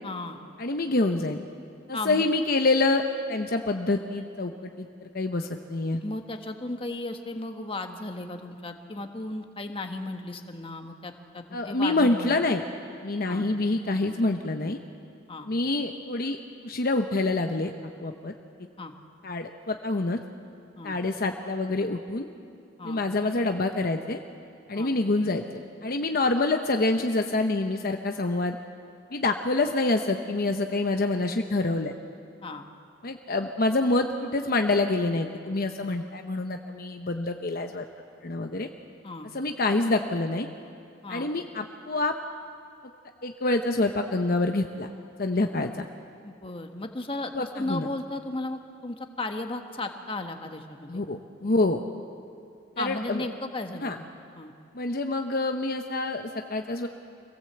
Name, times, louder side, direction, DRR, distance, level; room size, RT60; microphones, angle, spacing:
voice 1, 0.0-0.4 1.9-2.2 6.0-12.5 13.3-13.4 15.3-15.5 18.8-18.9 20.8-21.0 22.8-23.0 24.7-24.9 32.4-32.6 39.0-39.3 41.0-41.3 46.2-51.0 52.8-54.1 54.3-54.5, left 2 dB, 30° left, 5 dB, 1.3 m, -35 dB
voice 2, 0.6-1.4 1.9-3.0 3.3-6.0 11.5-12.6 13.0-14.8 15.5-16.4 16.6-17.7 18.0-18.3 19.2-20.2 20.8-22.3 22.8-24.2 24.7-28.6 29.1-31.9 33.0-37.8 38.2-38.7 39.3-40.5 41.1-42.1 43.2-44.9 45.2-45.9 47.3-47.9 50.9-51.8 52.8-53.3 53.8-54.0 54.7-56.9, left 2 dB, 50° left, 5 dB, 0.9 m, -26 dB
25.0 x 17.5 x 7.9 m, 2.4 s
head